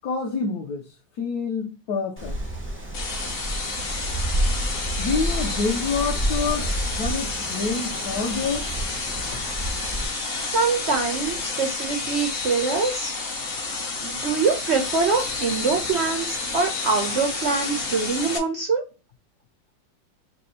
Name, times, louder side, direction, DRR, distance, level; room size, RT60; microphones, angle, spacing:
voice 1, 0.0-2.4 5.0-8.7, left 4 dB, 65° left, 1.0 m, -27 dB
Wind, 2.2-10.0, right 1 dB, 15° right, 0.5 m, -29 dB
sound 1, 2.9-18.4, left 3 dB, 50° left, 0.7 m, -30 dB
voice 2, 10.4-13.1 14.0-18.8, right 4 dB, 80° right, 0.6 m, -24 dB
3.4 x 2.8 x 4.1 m
omnidirectional pair, 2.0 m